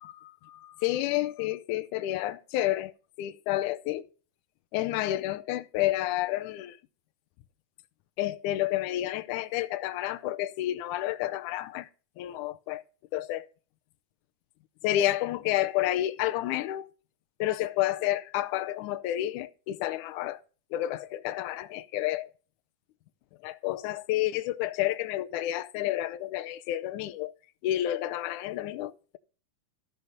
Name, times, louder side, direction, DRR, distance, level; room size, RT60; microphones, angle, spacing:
voice 1, 0.0-2.9 3.2-4.1 4.7-6.8 8.2-11.9 12.2-12.8 13.1-13.5 14.8-16.9 17.4-20.4 20.7-22.3 23.4-27.3 27.6-29.2, left 14 dB, 75° left, 2.1 m, -30 dB
14.5 x 5.1 x 5.5 m
omnidirectional pair, 3.8 m